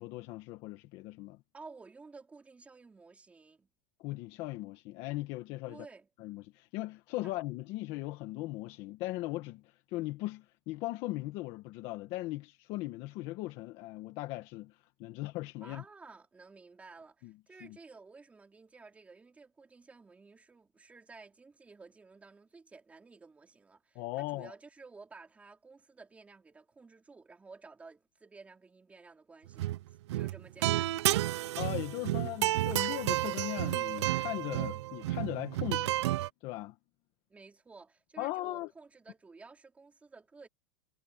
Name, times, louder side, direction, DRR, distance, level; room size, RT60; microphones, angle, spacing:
voice 1, 0.0-1.4 4.0-5.8 6.2-15.8 17.2-17.3 17.6-17.8 23.9-24.5 31.6-36.0 36.4-36.8 38.2-38.7, left 18 dB, 35° left, 1.7 m, -38 dB
voice 2, 1.5-3.7 5.7-6.1 7.2-7.3 15.6-29.7 30.1-30.9 37.3-40.5, right 4 dB, 10° right, 4.7 m, -53 dB
sound 1, 29.5-29.8 30.1-36.3, right 15 dB, 65° right, 0.7 m, -31 dB
supercardioid pair, 165°, 15 cm